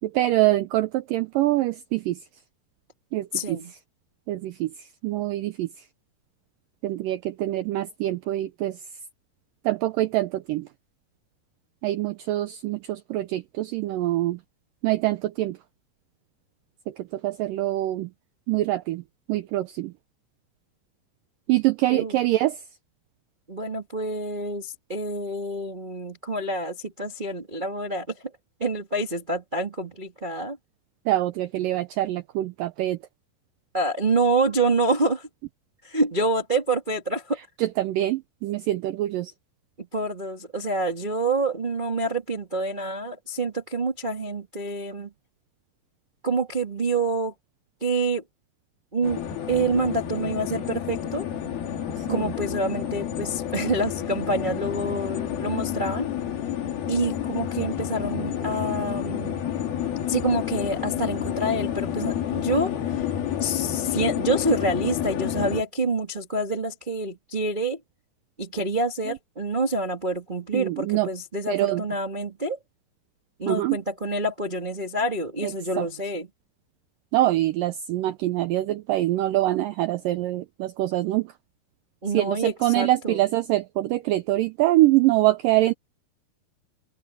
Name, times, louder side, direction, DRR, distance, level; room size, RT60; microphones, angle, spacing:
voice 1, 0.0-2.2 3.1-3.6 4.3-5.7 6.8-8.8 9.6-10.7 11.8-14.4 14.8-15.6 16.9-18.1 18.5-19.0 19.3-19.9 21.5-22.6 31.1-33.0 37.6-39.3 52.0-52.3 70.5-71.1 71.5-71.8 73.5-73.8 75.4-75.9 77.1-81.3 82.1-85.7, right 16 dB, 85° right, 1.9 m, -24 dB
voice 2, 3.3-3.7 21.9-22.2 23.5-28.2 28.6-30.6 33.7-35.3 35.8-37.4 39.8-45.1 46.2-47.3 47.8-48.2 48.9-51.3 52.1-56.1 56.9-59.4 60.1-63.0 63.4-67.8 68.4-72.6 73.4-76.3 82.0-83.2, right 2 dB, 70° right, 0.4 m, -27 dB
sound 1, 49.0-65.6, left 10 dB, 65° left, 3.9 m, -29 dB
open air
omnidirectional pair, 4.8 m